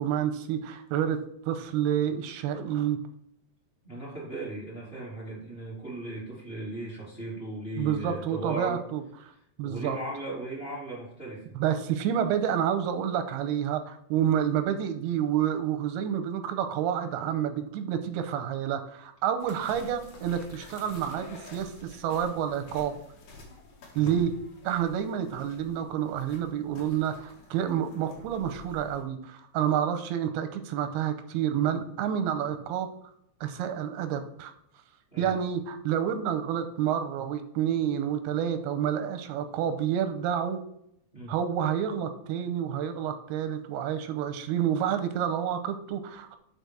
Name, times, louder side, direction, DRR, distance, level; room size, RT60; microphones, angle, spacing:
voice 1, 0.0-3.0 7.8-9.0 9.6-10.0 11.6-22.9 24.0-24.3 24.6-32.9 33.4-34.5 35.2-40.6 41.3-46.4, right 9 dB, 90° right, 9 dB, 2.7 m, -29 dB
voice 2, 3.8-8.8 9.3-11.6 23.9-24.1 35.1-35.3 41.1-41.3, right 2 dB, 15° left, -6 dB, 3.0 m, -37 dB
sound 1, 19.4-29.0, left 2 dB, 60° left, 3.1 m, -48 dB
6.8 x 4.9 x 6.1 m, 0.74 s
omnidirectional pair, 4.6 m